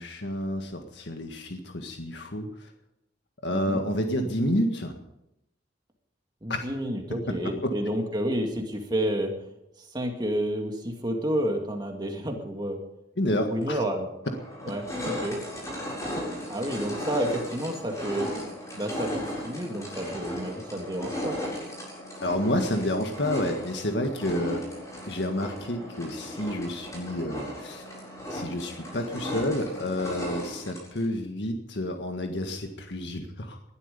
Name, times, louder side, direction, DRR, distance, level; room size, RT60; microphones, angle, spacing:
voice 1, 0.0-2.7 3.4-5.0 6.5-6.7 7.4-7.7 13.2-13.8 22.2-24.7 25.1-27.9 28.3-33.6, left 1 dB, 70° left, 4 dB, 1.8 m, -29 dB
voice 2, 3.5-3.8 6.4-9.3 9.9-12.8 13.5-14.1 14.7-15.4 16.5-18.3 18.7-21.4, equal, 25° right, 3 dB, 2.2 m, -30 dB
sound 1, 13.6-13.7 14.2-31.1, equal, 20° left, 7.4 m, -36 dB
19.5 x 12.5 x 5.3 m, 0.86 s
head